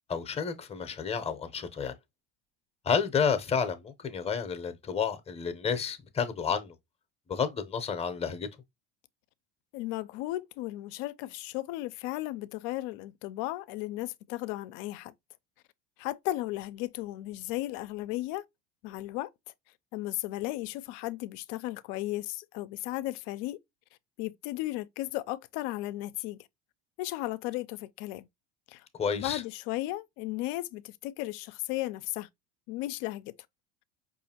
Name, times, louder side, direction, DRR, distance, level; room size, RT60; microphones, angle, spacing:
voice 1, 0.1-2.0 2.8-6.7 7.3-8.5 29.0-29.4, left 6 dB, 20° left, 0.6 m, -30 dB
voice 2, 9.7-15.1 16.0-18.4 18.8-19.3 19.9-23.6 24.2-26.5 27.0-28.3 28.7-28.8 29.1-32.3 32.7-33.3, left 17 dB, 65° left, 0.4 m, -35 dB
4.8 x 2.5 x 2.8 m
supercardioid pair, 100°, 34 cm